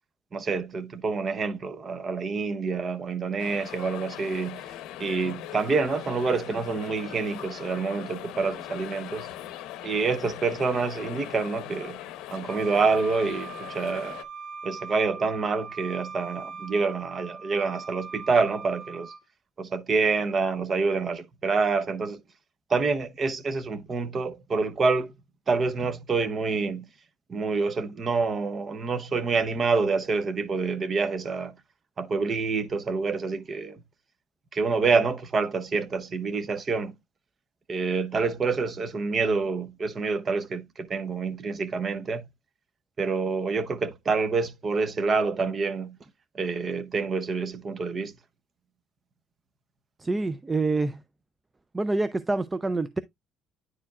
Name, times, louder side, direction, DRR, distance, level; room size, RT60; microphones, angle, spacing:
voice 1, 0.3-4.7 5.0-9.3 9.8-12.0 12.3-14.2 14.6-19.1 19.6-22.2 22.7-25.1 25.5-26.9 27.3-31.5 32.0-33.8 34.5-36.9 37.7-42.2 43.0-46.0 46.3-48.1, right 4 dB, 30° right, 0.8 m, -27 dB
sound 1, 3.4-14.2, left 13 dB, 85° left, 0.7 m, -40 dB
Wind instrument woodwind instrument, 12.5-19.2, right 5 dB, 50° right, 1.0 m, -41 dB
voice 2, 50.0-51.0 51.7-53.0, right 3 dB, 15° right, 0.3 m, -26 dB
9.8 x 4.6 x 2.3 m
cardioid pair, 135°, 0 cm